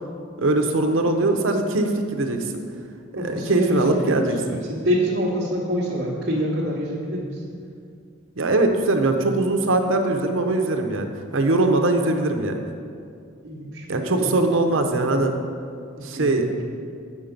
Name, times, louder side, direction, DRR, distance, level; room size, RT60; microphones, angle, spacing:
voice 1, 0.4-2.6 3.2-4.6 8.4-11.1 11.3-12.8 13.9-15.3 16.0-16.5, right 2 dB, 75° right, 5 dB, 0.8 m, -21 dB
voice 2, 3.1-7.4 13.4-14.3 14.7-15.1 16.0-16.6, equal, 55° right, -7 dB, 1.2 m, -27 dB
8.5 x 5.8 x 5.2 m, 2.4 s
head